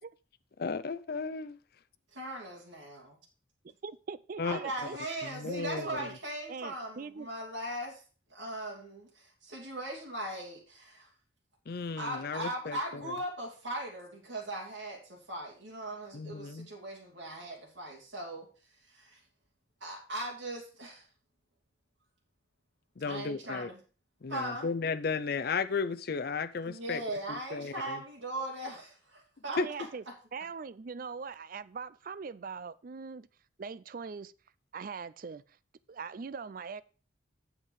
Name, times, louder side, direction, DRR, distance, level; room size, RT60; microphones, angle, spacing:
voice 1, 0.6-1.6 4.4-4.6 5.3-6.1 11.7-13.1 16.1-16.7 23.0-23.7 24.2-27.0 27.5-28.0 29.6-29.7, left 4 dB, 55° left, 0.5 m, -34 dB
voice 2, 2.1-3.2 4.4-8.0 8.3-11.1 12.0-18.5 18.9-19.2 19.8-21.0 23.0-23.8 24.3-24.7 26.6-29.6, right 1 dB, 80° right, 2.6 m, -39 dB
voice 3, 3.6-5.0 5.4-6.1 6.5-7.3 29.5-30.0 30.3-33.3 33.6-34.3 34.7-35.6 35.9-36.8, right 5 dB, 50° right, 0.4 m, -41 dB
8.2 x 7.3 x 4.8 m
head